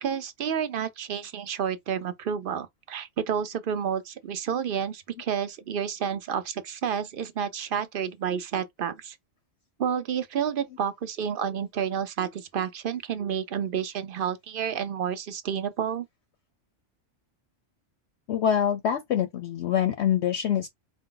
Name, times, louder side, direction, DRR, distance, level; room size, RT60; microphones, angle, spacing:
voice 1, 0.0-9.2 9.8-16.1, right 8 dB, 55° right, 0.7 m, -30 dB
voice 2, 18.3-20.7, left 9 dB, 65° left, 0.8 m, -25 dB
4.6 x 2.1 x 3.8 m
omnidirectional pair, 1.3 m